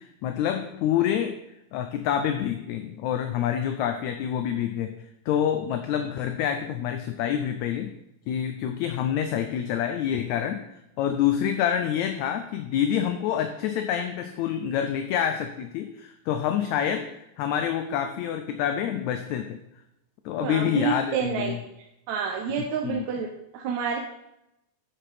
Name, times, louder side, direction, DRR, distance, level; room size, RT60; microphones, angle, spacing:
voice 1, 0.0-1.4 1.7-7.9 8.3-19.6 20.3-21.6 22.8-23.1, left 9 dB, 75° left, 7 dB, 1.8 m, -27 dB
voice 2, 20.4-21.5 22.1-23.3 23.5-24.0, right 6 dB, 70° right, 2 dB, 2.0 m, -28 dB
10.0 x 6.3 x 5.0 m, 0.86 s
omnidirectional pair, 3.7 m